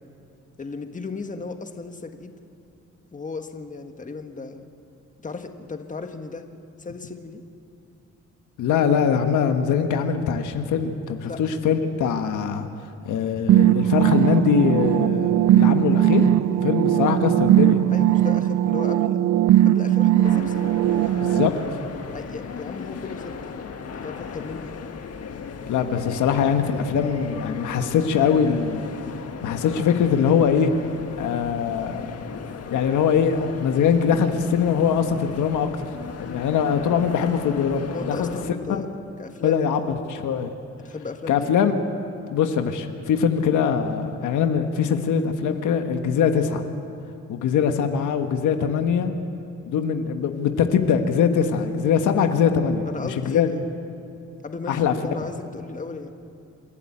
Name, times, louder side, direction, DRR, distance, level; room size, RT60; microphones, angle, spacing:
voice 1, 0.6-2.3 3.1-4.7 5.2-6.4 6.8-7.4 11.2-11.4 17.9-19.2 19.6-20.8 22.1-23.5 24.0-24.7 37.9-38.9 39.2-39.8 40.8-41.5 52.9-53.7 54.4-56.1, left 4 dB, 25° left, 6 dB, 1.6 m, -35 dB
voice 2, 8.6-12.7 13.0-17.9 21.2-21.5 25.7-28.8 29.4-30.7 31.2-32.2 32.7-35.9 36.2-38.3 38.7-38.8 39.4-40.5 41.3-41.7 42.3-46.6 47.3-49.1 49.7-53.5 54.7-54.9, left 7 dB, 80° left, 6 dB, 1.5 m, -22 dB
sound 1, 13.5-21.5, right 13 dB, 70° right, 0.6 m, -19 dB
sound 2, 20.2-38.5, left 6 dB, 55° left, 1.7 m, -36 dB
28.5 x 11.0 x 8.6 m, 2.6 s
cardioid pair, 90°, 30 cm